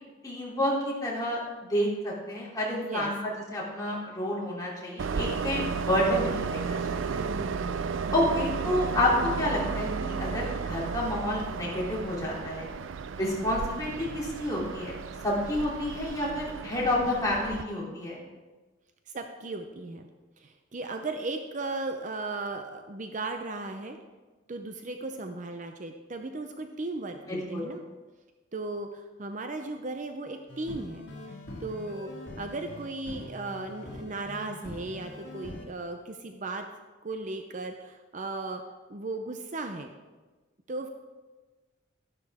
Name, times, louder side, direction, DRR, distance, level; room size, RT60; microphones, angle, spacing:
voice 1, 0.2-7.2 8.1-12.7 13.2-15.0 15.2-18.2 27.3-27.6, left 1 dB, 20° left, -5 dB, 3.1 m, -29 dB
Train, 5.0-17.6, right 5 dB, 85° right, 0.5 m, -33 dB
voice 2, 7.2-8.3 13.2-13.5 19.1-24.0 24.5-27.8 28.5-31.1 31.6-32.1 32.4-36.7 37.0-38.6 38.9-39.9 40.7-40.9, right 2 dB, 40° right, 6 dB, 0.6 m, -36 dB
sound 1, 30.5-35.7, left 1 dB, 65° left, 2.6 m, -43 dB
12.0 x 11.0 x 3.6 m, 1.3 s
head